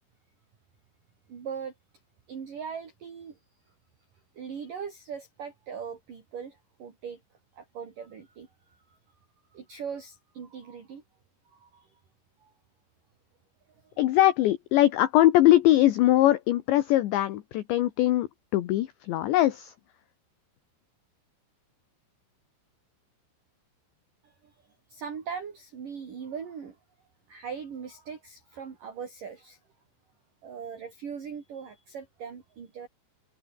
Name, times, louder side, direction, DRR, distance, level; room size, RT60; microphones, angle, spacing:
voice 1, 1.3-1.7 2.3-3.4 4.3-7.2 7.5-9.0 9.5-11.0 11.5-12.0 12.4-12.5 13.7-14.0 24.2-26.8 27.3-29.6 30.4-32.9, right 6 dB, 45° right, 4.7 m, -40 dB
voice 2, 14.0-19.7, left 14 dB, 70° left, 3.2 m, -22 dB
omnidirectional pair, 5.9 m